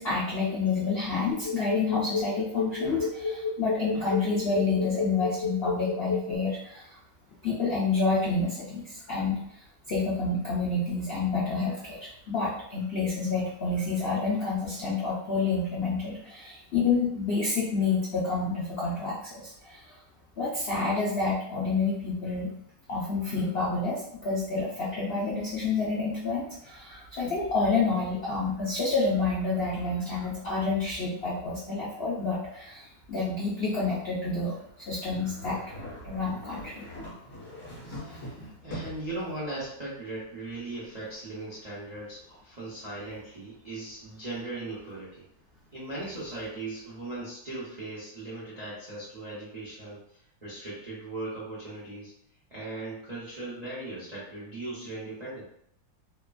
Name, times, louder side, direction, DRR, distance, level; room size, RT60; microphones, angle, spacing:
voice 1, 0.0-7.0 7.4-9.4 9.9-20.0 20.4-22.5 22.9-36.8, left 4 dB, 70° left, -7 dB, 0.5 m, -29 dB
sound 1, 1.3-6.4, left 4 dB, 25° left, 0.9 m, -30 dB
sound 2, 35.1-39.2, equal, 40° left, 1.5 m, -42 dB
voice 2, 37.8-45.2 45.7-50.0 50.4-52.1 52.5-55.4, right 2 dB, 65° right, -9 dB, 0.4 m, -38 dB
2.9 x 2.4 x 2.2 m, 0.71 s
omnidirectional pair, 1.8 m